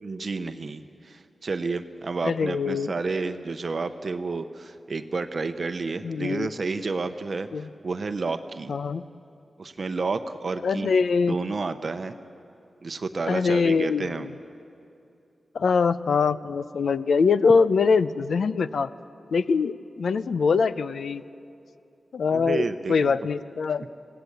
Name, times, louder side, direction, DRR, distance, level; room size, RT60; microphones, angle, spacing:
voice 1, 0.0-8.7 9.6-10.9 11.3-12.1 12.8-14.3 22.3-23.1, right 4 dB, 45° right, 9 dB, 0.8 m, -30 dB
voice 2, 2.2-2.9 6.0-6.5 7.5-7.7 8.7-9.0 10.6-11.4 13.3-14.3 15.5-18.9 19.3-21.2 22.1-23.9, left 5 dB, 75° left, 14 dB, 0.6 m, -23 dB
26.5 x 17.5 x 8.0 m, 2.7 s
wide cardioid pair, 165°, 0 cm